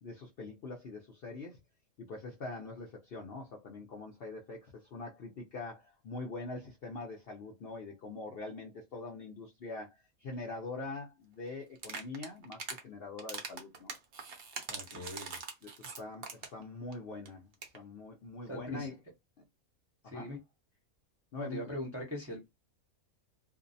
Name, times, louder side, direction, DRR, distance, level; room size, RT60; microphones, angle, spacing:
voice 1, 0.0-1.6 2.0-13.9 14.9-15.1 15.6-18.9 20.0-20.3 21.3-21.8, left 3 dB, 60° left, 0.6 m, -43 dB
sound 1, 11.8-12.8 13.2-16.6 16.9-17.0 17.3-17.4 17.5-17.8, right 5 dB, 55° right, 0.7 m, -42 dB
voice 2, 14.7-15.4 18.5-18.9 20.1-20.4 21.3-22.5, left 1 dB, 15° right, 0.5 m, -41 dB
2.5 x 2.0 x 2.6 m
omnidirectional pair, 1.5 m